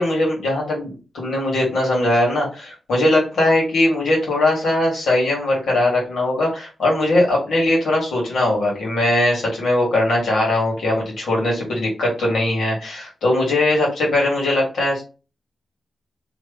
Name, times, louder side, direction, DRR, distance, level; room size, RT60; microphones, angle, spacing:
voice 1, 0.0-15.0, left 1 dB, 85° left, -2 dB, 2.2 m, -20 dB
3.4 x 3.0 x 3.3 m, 0.31 s
wide cardioid pair, 180°, 0 cm